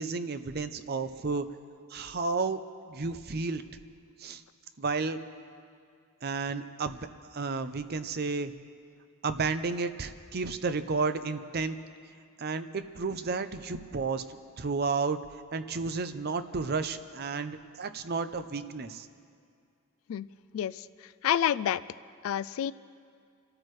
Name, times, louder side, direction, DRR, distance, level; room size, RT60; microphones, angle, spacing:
voice 1, 0.0-1.5 1.9-2.6 2.9-3.6 4.2-4.4 4.8-5.2 6.2-7.0 7.3-8.5 9.2-11.8 12.4-15.2 15.5-19.1, right 4 dB, 45° right, 10 dB, 0.6 m, -32 dB
voice 2, 20.5-21.8 22.2-22.7, left 10 dB, 75° left, 17 dB, 0.3 m, -29 dB
29.0 x 13.5 x 3.2 m, 2.3 s
head